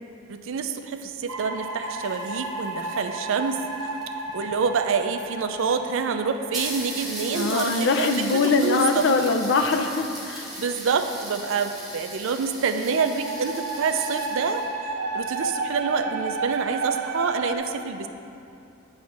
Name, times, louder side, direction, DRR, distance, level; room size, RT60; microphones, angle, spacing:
voice 1, 0.3-3.6 4.3-9.1 10.6-14.6 15.1-18.1, right 5 dB, 60° right, 8 dB, 0.4 m, -27 dB
sound 1, 1.3-8.9 12.9-17.6, right 3 dB, 90° right, 0.7 m, -32 dB
sound 2, 1.6-4.3 5.2-5.3 5.5-5.6 6.0-6.1 6.5-14.7, right 1 dB, ahead, 1.3 m, -37 dB
voice 2, 7.3-10.4, left 3 dB, 55° left, 6 dB, 0.4 m, -22 dB
8.9 x 3.2 x 5.9 m, 2.6 s
head